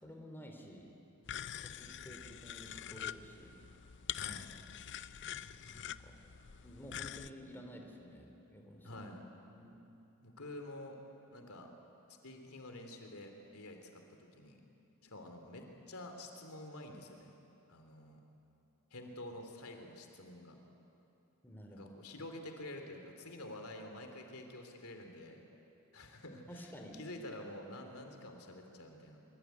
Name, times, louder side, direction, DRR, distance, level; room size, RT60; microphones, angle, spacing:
voice 1, 0.0-1.0 1.6-3.6 5.1-5.2 5.5-6.1 6.6-9.0 9.5-9.8 21.4-21.9 26.5-27.0, equal, 10° left, 2 dB, 3.0 m, -52 dB
sound 1, 1.2-7.3, left 10 dB, 55° left, 0.6 m, -45 dB
voice 2, 4.1-4.5 8.8-9.2 10.2-11.0 11.3-11.7 12.1-14.6 15.0-17.3 17.7-18.2 18.9-20.6 21.7-25.4 25.9-29.2, left 1 dB, 75° left, 4 dB, 3.3 m, -49 dB
24.0 x 23.5 x 9.4 m, 2.8 s
head